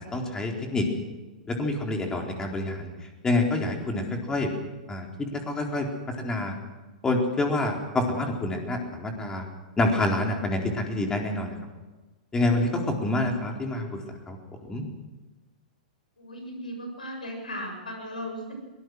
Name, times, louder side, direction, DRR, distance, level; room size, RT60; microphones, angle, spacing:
voice 1, 0.1-0.9 1.5-2.9 3.2-4.5 4.9-5.9 6.2-6.5 7.0-9.4 9.8-11.6 12.3-14.0 14.3-14.4 14.7-14.8, left 2 dB, 15° left, 2 dB, 4.1 m, -27 dB
voice 2, 16.2-18.5, equal, 85° left, 4 dB, 7.2 m, -36 dB
22.5 x 19.0 x 6.3 m, 1.2 s
figure-of-eight pair, 105°, 4 cm